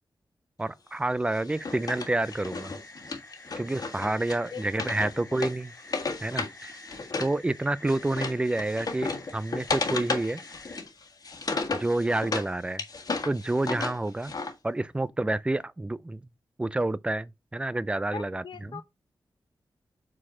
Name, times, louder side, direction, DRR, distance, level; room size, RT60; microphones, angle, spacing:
voice 1, 0.6-2.8 3.6-5.7 6.2-6.8 7.2-10.4 11.7-12.8 13.2-14.3 14.6-16.2 16.6-18.8, right 2 dB, 15° right, 0.4 m, -29 dB
Wood, 1.3-7.4 7.6-12.5 12.8-14.5, left 4 dB, 50° left, 1.5 m, -34 dB
sound 1, 1.5-10.8, left 2 dB, 25° left, 1.8 m, -50 dB
voice 2, 18.1-18.8, left 6 dB, 65° left, 0.9 m, -40 dB
7.4 x 4.2 x 4.3 m
wide cardioid pair, 145°, 8 cm